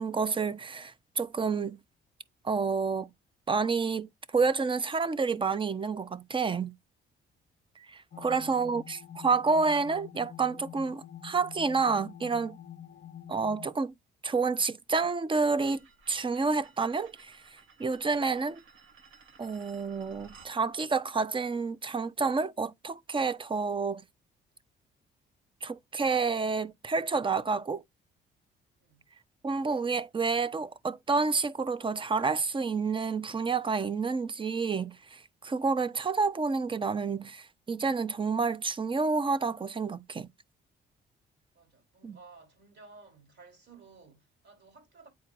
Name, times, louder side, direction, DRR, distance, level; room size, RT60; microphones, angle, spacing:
voice 1, 0.0-1.8 2.4-3.1 3.5-6.7 7.9-12.6 13.3-13.9 14.2-15.8 16.1-17.4 17.8-18.6 19.4-24.0 25.6-27.8 29.4-40.3 42.0-42.2, right 4 dB, 25° right, 0.6 m, -29 dB
sound 1, 8.1-13.7, left 10 dB, 50° left, 0.7 m, -47 dB
voice 2, 8.1-8.6 9.4-9.6 12.9-13.1 28.8-29.1 41.5-45.1, right 4 dB, 60° right, 3.9 m, -56 dB
sound 2, 15.6-20.6, right 5 dB, 85° right, 1.4 m, -56 dB
8.3 x 4.5 x 2.5 m
cardioid pair, 90°, 20 cm